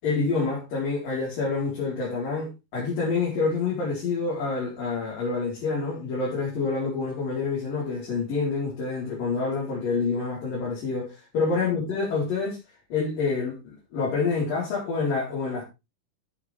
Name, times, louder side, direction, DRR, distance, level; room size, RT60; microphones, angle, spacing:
voice 1, 0.0-12.6 12.9-15.6, left 4 dB, 80° left, 6.0 m, -27 dB
14.0 x 8.1 x 3.5 m
omnidirectional pair, 3.9 m